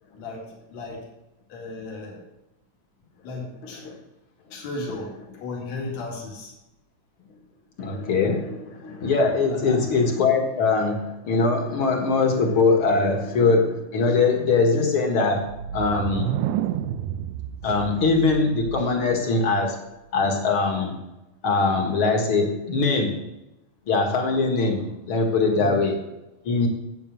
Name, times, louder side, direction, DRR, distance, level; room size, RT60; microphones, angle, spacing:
voice 1, 0.2-1.0 1.5-2.2 3.2-3.8 4.5-6.5 9.5-9.8 25.5-25.7, left 2 dB, 65° left, -2 dB, 3.5 m, -35 dB
voice 2, 7.8-15.5 15.7-16.4 17.6-19.8 20.1-21.0 21.4-23.2 23.9-26.0 26.5-26.7, left 3 dB, 50° left, 3 dB, 2.3 m, -22 dB
sound 1, 15.5-19.2, right 10 dB, 85° right, 2.0 m, -30 dB
10.5 x 8.6 x 6.3 m, 0.96 s
omnidirectional pair, 3.4 m